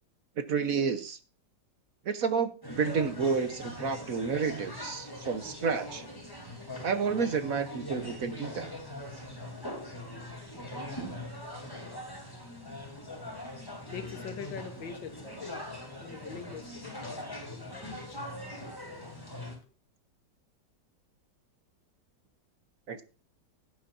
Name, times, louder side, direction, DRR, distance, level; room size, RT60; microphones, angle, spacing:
voice 1, 0.4-1.2 2.0-6.0 6.8-8.7 22.9-23.0, right 5 dB, 55° right, 1.3 m, -30 dB
sound 1, 2.6-19.6, left 1 dB, 10° left, 3.4 m, -42 dB
voice 2, 13.9-15.6 16.0-18.2, left 6 dB, 80° left, 2.0 m, -43 dB
17.0 x 8.2 x 2.7 m
omnidirectional pair, 2.0 m